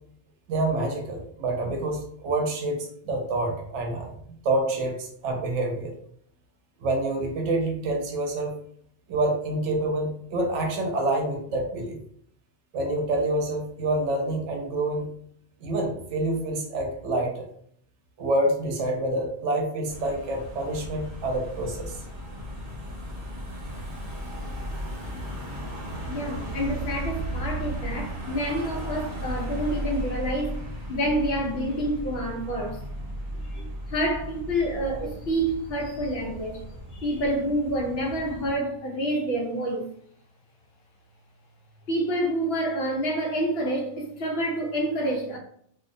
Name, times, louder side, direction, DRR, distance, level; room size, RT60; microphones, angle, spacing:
voice 1, 0.5-4.2 4.4-5.9 6.8-8.6 9.1-12.0 12.7-15.1 15.6-17.4 18.2-22.0, right 2 dB, 80° right, 0.9 m, -27 dB
Car passing by / Engine, 19.9-38.6, equal, 55° right, 1.0 m, -36 dB
voice 2, 26.1-30.5 30.9-32.8 33.3-36.6 36.9-39.9 41.9-45.4, right 1 dB, 65° left, 0.8 m, -28 dB
2.4 x 2.0 x 2.5 m
omnidirectional pair, 1.2 m